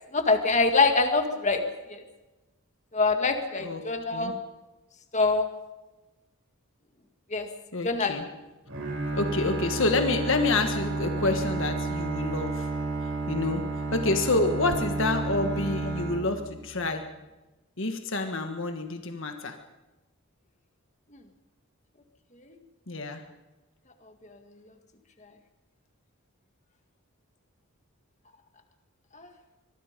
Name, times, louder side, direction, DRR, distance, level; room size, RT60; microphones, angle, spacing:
voice 1, 0.1-1.6 1.9-2.0 2.9-4.3 5.1-5.5 7.3-7.5 7.8-8.2 29.2-29.3, left 3 dB, 35° left, 5 dB, 1.9 m, -24 dB
voice 2, 3.6-4.3 7.7-8.3 9.1-12.7 13.3-17.1 17.8-19.6 22.9-23.2, left 3 dB, 60° left, 6 dB, 1.6 m, -28 dB
Bowed string instrument, 8.7-16.9, right 3 dB, 65° right, 7.1 m, -31 dB
24.5 x 22.0 x 5.2 m, 1.1 s
head